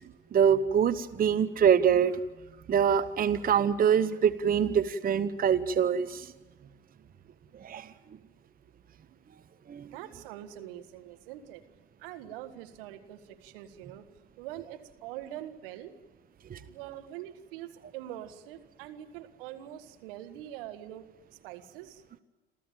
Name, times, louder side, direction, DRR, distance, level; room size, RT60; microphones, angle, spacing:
voice 1, 0.3-2.2 2.7-6.3 7.6-7.9 9.7-9.9 16.5-16.6, right 8 dB, 30° right, 14 dB, 1.0 m, -24 dB
voice 2, 9.9-11.6 12.0-14.1 14.4-15.9 16.7-21.0 21.4-22.0, right 12 dB, 70° right, 8 dB, 1.8 m, -44 dB
27.5 x 14.5 x 8.9 m, 1.2 s
hypercardioid pair, 70°, 29 cm